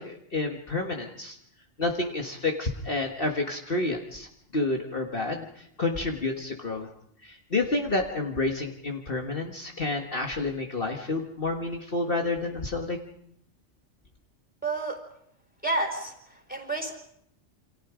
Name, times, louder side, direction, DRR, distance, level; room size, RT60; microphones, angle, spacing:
voice 1, 0.0-1.4 1.8-6.9 7.2-13.0, left 2 dB, 50° left, 2 dB, 1.9 m, -29 dB
voice 2, 14.6-15.0 15.6-16.9, right 2 dB, 5° right, 3 dB, 4.3 m, -30 dB
28.5 x 26.5 x 5.1 m, 0.71 s
omnidirectional pair, 1.3 m